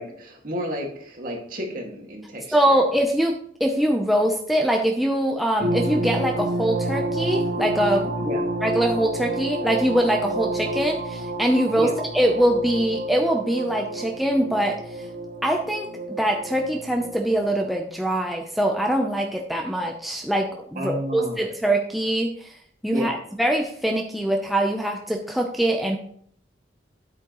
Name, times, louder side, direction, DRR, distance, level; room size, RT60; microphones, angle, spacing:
voice 1, 0.0-2.8 8.2-8.4 11.8-11.9 20.8-21.4 22.9-23.2, equal, 50° right, 0 dB, 2.1 m, -31 dB
voice 2, 2.5-8.1 8.6-15.0 15.4-15.9 16.2-22.5 22.8-26.0, right 1 dB, ahead, 1 dB, 0.6 m, -23 dB
sound 1, 5.6-17.7, right 1 dB, 75° right, 1.1 m, -29 dB
9.6 x 8.4 x 3.0 m, 0.63 s
head